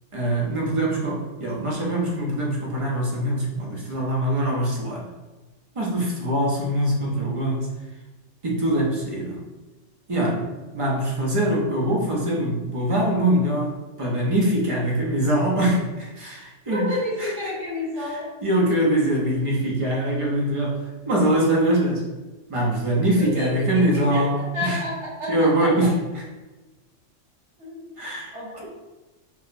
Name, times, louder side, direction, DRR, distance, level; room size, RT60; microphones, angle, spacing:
voice 1, 0.1-5.1 5.7-7.7 8.4-9.4 10.1-17.5 18.0-22.0 22.5-24.8 25.3-26.2 28.0-28.4, right 1 dB, 35° right, -3 dB, 0.6 m, -23 dB
voice 2, 16.7-18.3 23.1-23.5 23.7-23.8 24.1-24.2 24.5-25.7 27.6-27.8 28.3-28.7, left 1 dB, 70° right, -8 dB, 1.7 m, -30 dB
4.6 x 2.0 x 2.5 m, 1.2 s
omnidirectional pair, 1.3 m